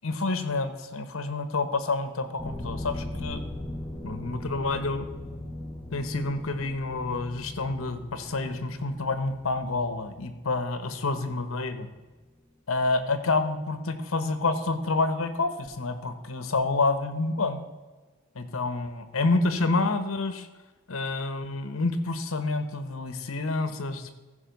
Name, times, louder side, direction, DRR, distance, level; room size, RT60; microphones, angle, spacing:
voice 1, 0.0-3.4 4.0-5.1 5.9-11.9 12.7-17.7 18.3-20.5 20.9-24.1, left 3 dB, 85° left, 10 dB, 1.1 m, -28 dB
sound 1, 2.4-11.2, left 1 dB, 5° left, 1.2 m, -39 dB
15.0 x 5.2 x 5.3 m, 1.3 s
head